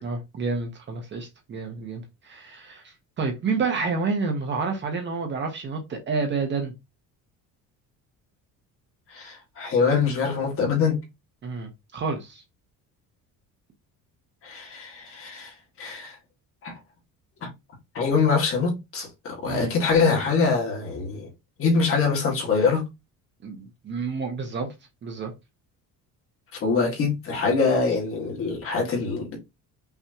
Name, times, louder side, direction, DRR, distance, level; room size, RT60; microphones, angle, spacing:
voice 1, 0.0-6.7 11.4-12.4 19.5-19.7 23.4-24.7 25.0-25.3, right 4 dB, 30° right, 1.0 m, -29 dB
voice 2, 9.1-11.0 14.4-15.5 15.8-16.1 16.6-16.7 17.4-17.5 18.0-21.3 21.6-22.8 26.6-29.4, left 5 dB, 40° left, 1.9 m, -24 dB
5.7 x 3.1 x 2.9 m
cardioid pair, 175°, 35 cm